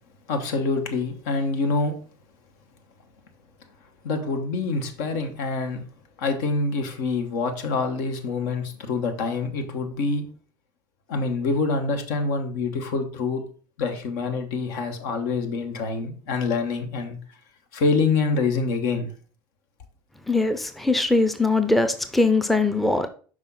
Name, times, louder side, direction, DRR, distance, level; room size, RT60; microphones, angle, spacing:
voice 1, 0.3-1.9 4.0-5.8 6.2-10.2 11.1-13.4 13.8-17.2 17.7-19.1, left 4 dB, 65° left, 1.1 m, -26 dB
voice 2, 20.3-23.1, left 2 dB, ahead, 0.6 m, -21 dB
5.6 x 4.8 x 3.9 m
hypercardioid pair, 80°, 11 cm